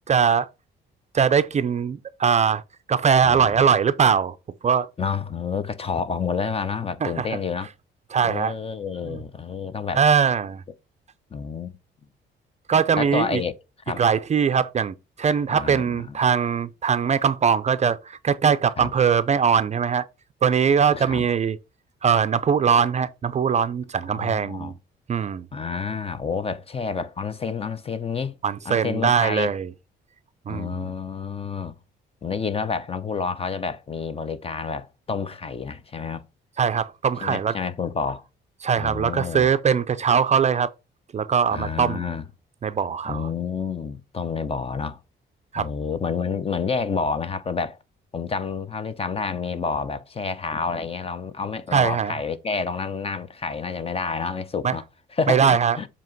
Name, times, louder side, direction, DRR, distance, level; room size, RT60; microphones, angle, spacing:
voice 1, 0.1-0.5 1.1-2.6 2.9-4.4 4.6-4.9 7.0-7.3 8.1-8.5 9.1-9.2 9.9-10.6 12.7-13.4 14.0-20.1 20.4-21.6 22.0-24.7 25.1-25.5 28.4-29.7 30.5-30.8 36.6-37.6 38.6-40.7 41.1-42.0 42.6-43.3 45.5-45.7 51.7-52.2 54.6-54.8 55.3-55.8, right 7 dB, 35° right, 0.4 m, -21 dB
voice 2, 5.0-7.7 8.2-10.0 11.3-11.8 13.0-13.5 13.9-14.0 15.5-16.2 18.8-18.9 20.9-21.3 24.1-24.7 25.5-28.4 28.6-29.5 30.5-31.7 32.2-36.2 37.2-38.2 38.8-39.5 41.5-42.2 43.0-45.0 45.6-47.8 48.1-54.8 55.1-55.9, left 5 dB, 30° left, 0.6 m, -29 dB
7.4 x 2.9 x 4.4 m
cardioid pair, 90°, 20 cm